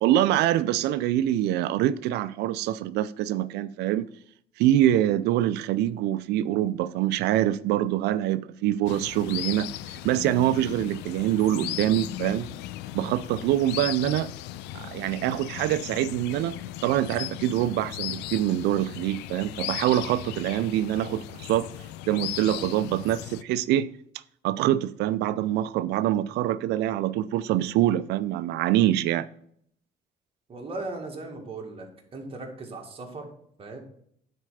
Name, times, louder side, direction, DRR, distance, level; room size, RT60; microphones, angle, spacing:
voice 1, 0.0-4.1 4.6-12.5 12.9-14.3 14.7-21.7 22.1-23.9 24.4-29.3, right 12 dB, 80° right, 0.4 m, -25 dB
sound 1, 8.9-23.4, left 14 dB, 90° left, 0.4 m, -37 dB
voice 2, 30.5-33.3 33.6-33.8, right 2 dB, 35° right, 2.1 m, -38 dB
9.7 x 4.3 x 4.9 m
cardioid pair, 110°, 17 cm